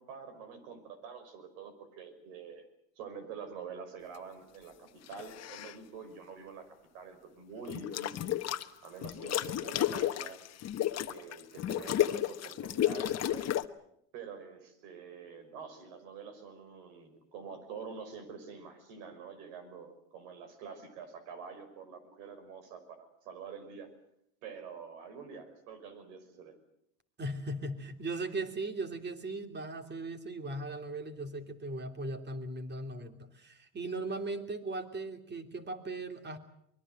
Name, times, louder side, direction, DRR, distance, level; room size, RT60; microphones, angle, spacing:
voice 1, 0.0-2.6 3.0-10.4 11.0-13.5 14.1-23.9 24.4-26.6, right 5 dB, 80° right, 11 dB, 5.7 m, -47 dB
sound 1, 5.1-5.8 7.7-8.7 9.0-13.7, left 12 dB, 40° left, 1.3 m, -32 dB
voice 2, 27.2-36.4, right 2 dB, 25° right, 7 dB, 3.0 m, -38 dB
24.0 x 22.0 x 7.9 m, 0.74 s
supercardioid pair, 115°, 40 cm